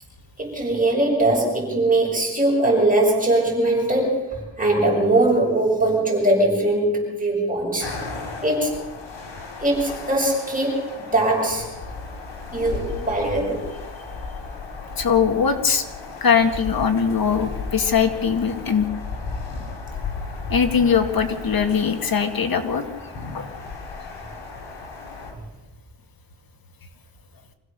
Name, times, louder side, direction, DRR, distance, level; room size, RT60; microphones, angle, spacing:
voice 1, 0.4-7.9 8.4-8.8 9.6-11.7 12.5-13.7, right 2 dB, 20° right, -2 dB, 7.3 m, -21 dB
sound 1, 7.8-25.3, left 4 dB, 80° left, 5.5 m, -35 dB
voice 2, 15.0-15.8 16.2-18.9 20.5-22.8 23.3-23.5, left 6 dB, 50° left, 6 dB, 2.1 m, -21 dB
25.5 x 16.0 x 6.9 m, 1.2 s
wide cardioid pair, 110°, 44 cm